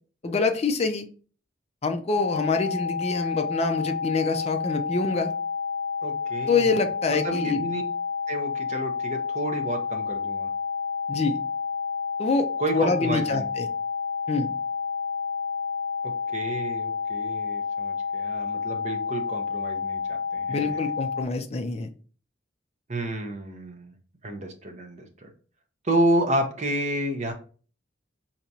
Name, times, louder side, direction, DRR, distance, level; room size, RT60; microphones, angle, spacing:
voice 1, 0.2-1.1 1.8-5.3 6.5-7.6 11.1-11.4 12.2-12.5 12.7-13.7 14.3-14.5 20.5-21.9, left 4 dB, 35° left, 6 dB, 0.4 m, -26 dB
sound 1, 2.2-21.2, left 6 dB, 85° left, 0.6 m, -30 dB
voice 2, 6.0-6.7 7.1-7.8 8.3-10.5 12.6-13.5 16.0-20.8 22.9-23.9 24.2-25.3 25.8-27.3, right 1 dB, 40° right, 3 dB, 0.7 m, -30 dB
4.6 x 2.8 x 2.7 m, 0.39 s
head